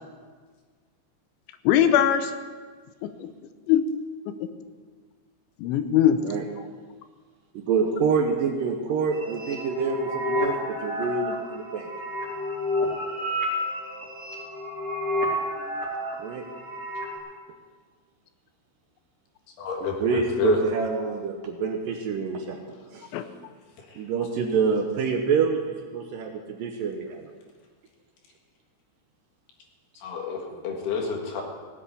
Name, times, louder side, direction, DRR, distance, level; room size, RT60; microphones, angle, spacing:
voice 1, 1.7-2.3 3.0-3.3 3.7-3.8 4.3-4.5 5.6-6.2 23.1-23.2, left 10 dB, 90° left, 9 dB, 3.2 m, -21 dB
voice 2, 7.5-11.9 16.2-16.4 19.8-22.6 22.9-23.1 24.0-27.3 30.5-30.6, right 5 dB, 80° right, 3 dB, 2.0 m, -27 dB
sound 1, 9.1-17.2, left 1 dB, 15° right, 3.3 m, -30 dB
voice 3, 19.6-20.6 23.8-24.0 30.0-31.4, left 6 dB, 70° left, 1 dB, 3.4 m, -30 dB
17.0 x 8.4 x 8.4 m, 1.5 s
omnidirectional pair, 5.2 m